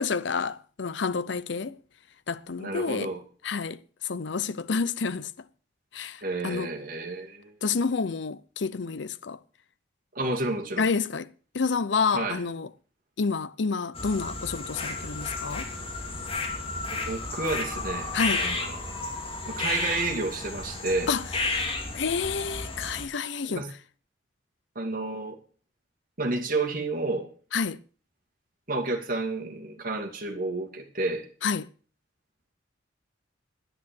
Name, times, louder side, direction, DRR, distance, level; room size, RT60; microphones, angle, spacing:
voice 1, 0.0-1.8 2.3-3.1 3.4-5.3 5.9-6.7 7.6-9.4 10.8-11.3 11.5-12.7 13.2-15.7 18.1-18.4 21.1-21.2 21.9-23.6 27.5-27.8 31.4-31.7, left 5 dB, 65° left, 0.6 m, -29 dB
voice 2, 2.6-3.2 6.2-7.5 10.1-10.9 12.1-12.4 16.9-18.1 18.3-18.8 19.5-21.1 23.5-23.7 24.8-25.4 26.2-27.3 28.7-31.3, right 2 dB, 50° right, 2.5 m, -30 dB
sound 1, 13.9-23.0, left 3 dB, 30° left, 2.6 m, -32 dB
10.5 x 10.0 x 6.9 m
head